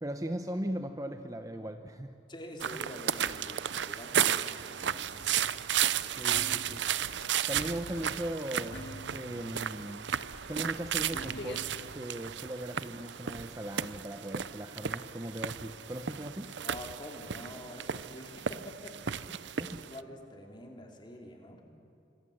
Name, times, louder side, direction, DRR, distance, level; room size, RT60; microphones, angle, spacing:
voice 1, 0.0-2.1 6.2-6.8 7.5-10.1 10.5-11.6 11.9-16.5 19.6-19.8, right 1 dB, 20° right, 7 dB, 0.8 m, -38 dB
voice 2, 2.3-5.4 16.6-19.2 19.6-21.6, left 1 dB, 25° left, 2 dB, 3.2 m, -46 dB
sound 1, 2.6-20.0, right 9 dB, 70° right, 0.6 m, -34 dB
sound 2, 5.1-11.9, left 1 dB, 65° left, 2.4 m, -47 dB
26.0 x 25.5 x 7.9 m, 2.6 s
head